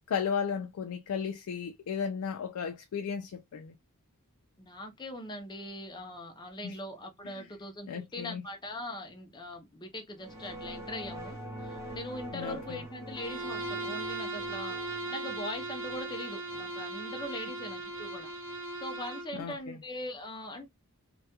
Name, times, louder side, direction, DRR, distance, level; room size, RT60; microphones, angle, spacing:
voice 1, 0.0-3.7 6.6-6.8 7.2-7.5 7.9-8.4 12.3-12.8 19.3-19.8, left 6 dB, 80° left, 0.4 m, -35 dB
voice 2, 4.6-18.3 18.8-20.7, left 1 dB, 20° left, 0.5 m, -41 dB
sound 1, 10.2-18.8, equal, 10° right, 0.7 m, -46 dB
Bowed string instrument, 13.2-19.3, right 2 dB, 55° right, 0.7 m, -38 dB
2.2 x 2.2 x 2.8 m
head